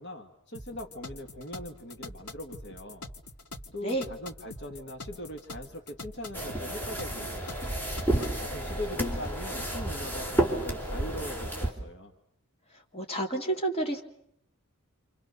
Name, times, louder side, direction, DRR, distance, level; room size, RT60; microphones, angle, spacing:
voice 1, 0.0-3.1 3.7-7.4 8.1-12.1, left 1 dB, 55° left, 4 dB, 2.1 m, -41 dB
sound 1, 0.5-8.5, left 2 dB, 85° left, 2.4 m, -44 dB
sound 2, 6.3-11.7, right 1 dB, 10° left, 4.1 m, -31 dB
voice 2, 12.9-14.0, right 2 dB, 30° left, 2 dB, 3.0 m, -30 dB
28.5 x 28.0 x 6.8 m, 0.72 s
head